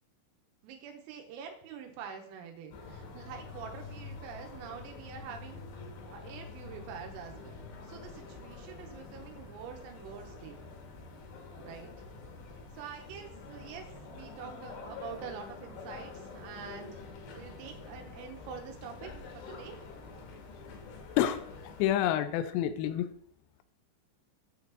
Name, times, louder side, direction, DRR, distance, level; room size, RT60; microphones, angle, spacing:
voice 1, 0.6-5.6 6.1-10.6 11.6-11.9 12.7-17.1 17.4-19.8, right 7 dB, 85° right, 3 dB, 3.7 m, -46 dB
sound 1, 2.7-21.9, left 4 dB, 70° left, 2.3 m, -47 dB
voice 2, 21.2-21.5 21.8-23.1, left 11 dB, 90° left, 10 dB, 3.3 m, -28 dB
8.7 x 6.7 x 2.9 m, 0.66 s
omnidirectional pair, 5.9 m